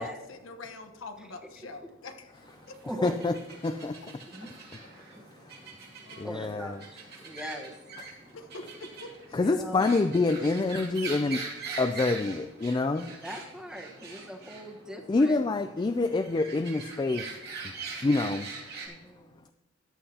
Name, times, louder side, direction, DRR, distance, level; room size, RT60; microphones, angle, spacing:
voice 1, 0.0-2.7 6.0-6.4 8.3-9.4, left 2 dB, 90° left, 6 dB, 1.1 m, -45 dB
voice 2, 1.6-1.9 2.8-3.2 4.3-4.5 5.2-5.3 6.2-7.8 9.3-9.9 13.2-15.4 18.9-19.4, equal, 5° right, 1 dB, 1.2 m, -41 dB
sound 1, 2.4-18.9, right 4 dB, 55° right, 2.4 m, -43 dB
voice 3, 3.0-3.3 3.6-4.0 6.2-6.7 9.3-11.4 11.8-13.1 15.1-17.3 18.0-18.5, left 3 dB, 25° left, 8 dB, 0.3 m, -26 dB
14.0 x 10.0 x 2.9 m, 1.1 s
head